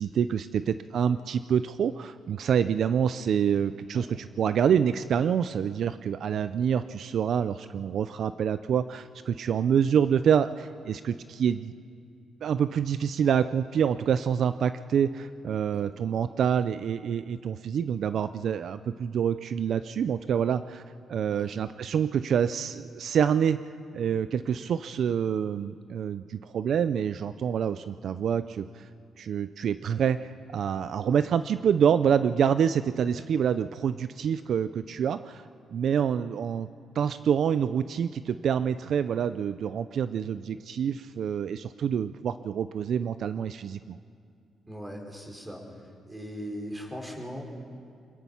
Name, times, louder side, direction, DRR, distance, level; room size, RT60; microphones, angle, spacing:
voice 1, 0.0-11.7 12.4-20.8 21.1-23.6 23.9-28.9 29.2-35.4 35.7-36.7 36.9-44.0, right 8 dB, 65° right, 12 dB, 0.5 m, -27 dB
voice 2, 44.7-45.6 46.1-47.4, equal, 15° right, 1 dB, 5.2 m, -39 dB
25.5 x 20.5 x 5.7 m, 2.4 s
cardioid pair, 90°, 0 cm